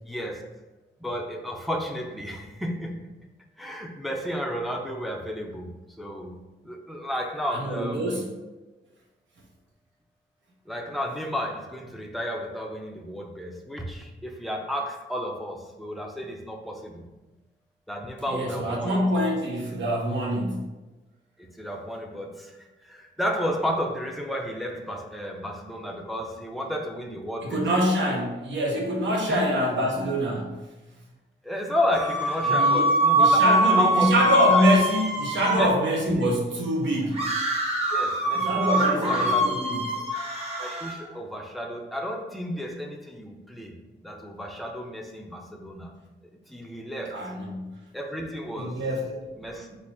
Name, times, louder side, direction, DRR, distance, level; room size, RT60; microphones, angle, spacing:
voice 1, 0.0-0.4 1.0-3.0 3.6-5.7 6.0-6.4 6.6-8.3 10.7-17.1 17.9-19.1 21.4-27.6 29.3-29.4 31.4-34.7 35.5-35.7 36.1-36.3 37.9-39.6 40.6-43.7 44.0-45.9 46.5-47.2 47.9-48.8 49.4-49.8, equal, ahead, 1 dB, 0.5 m, -32 dB
voice 2, 7.5-8.2 18.3-20.6 27.4-30.5 32.5-32.8 33.1-37.2 38.3-40.0 47.1-47.7 48.6-49.2, equal, 80° right, -1 dB, 1.0 m, -25 dB
sound 1, 31.9-35.6 37.1-41.0, right 1 dB, 30° right, 0.9 m, -23 dB
4.1 x 2.5 x 4.7 m, 1.1 s
wide cardioid pair, 145°, 19 cm